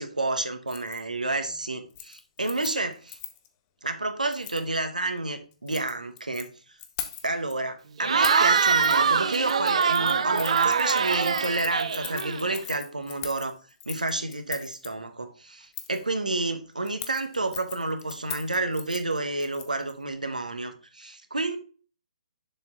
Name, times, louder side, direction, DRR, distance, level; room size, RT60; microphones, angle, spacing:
voice 1, 0.0-3.2 3.8-6.5 7.2-13.5 13.9-21.6, right 2 dB, 80° right, 1.1 m, -30 dB
Keys jangling, 0.7-1.0 1.3-1.6 1.9-3.5 4.3-4.6 5.5-6.4 6.8-7.5 8.2-8.5 8.8-9.0 9.3-14.9 15.7-16.0 16.9-19.9 20.2-20.3, left 11 dB, 25° left, 0.8 m, -40 dB
Cheering / Crowd, 8.0-12.6, right 6 dB, 55° right, 0.6 m, -23 dB
6.9 x 4.5 x 3.7 m
figure-of-eight pair, 135°, 4 cm